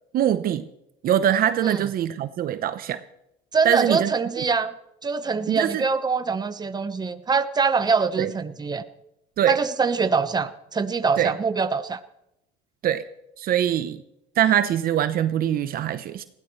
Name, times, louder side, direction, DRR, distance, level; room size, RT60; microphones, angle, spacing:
voice 1, 0.1-0.7 1.0-3.0 3.6-4.4 5.5-5.8 8.2-8.3 9.4-9.6 11.2-11.3 12.8-13.0 13.4-14.0 14.4-16.2, right 10 dB, 55° right, 12 dB, 0.9 m, -23 dB
voice 2, 3.5-4.7 5.0-8.8 9.5-12.0, right 5 dB, 20° right, 10 dB, 1.2 m, -24 dB
20.0 x 16.5 x 3.3 m, 0.82 s
supercardioid pair, 90°, 18 cm